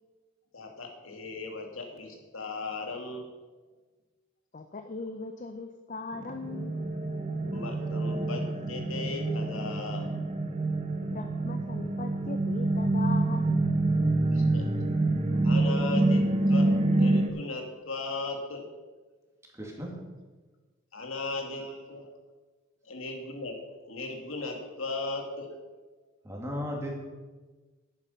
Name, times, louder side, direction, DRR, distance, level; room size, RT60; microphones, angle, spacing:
voice 1, 0.5-3.3 7.5-10.1 14.3-14.7 15.4-16.7 16.9-18.6 20.9-21.6 21.9-22.1 22.8-23.5 23.8-25.5, left 3 dB, 85° left, 2 dB, 2.2 m, -37 dB
voice 2, 4.5-6.8 11.0-13.6, left 3 dB, 40° left, 7 dB, 0.5 m, -39 dB
sound 1, 6.1-17.3, right 2 dB, 30° right, 0.9 m, -27 dB
voice 3, 19.6-19.9 21.4-21.7 26.2-27.1, left 1 dB, 15° right, -1 dB, 2.2 m, -36 dB
11.0 x 8.4 x 5.6 m, 1.3 s
head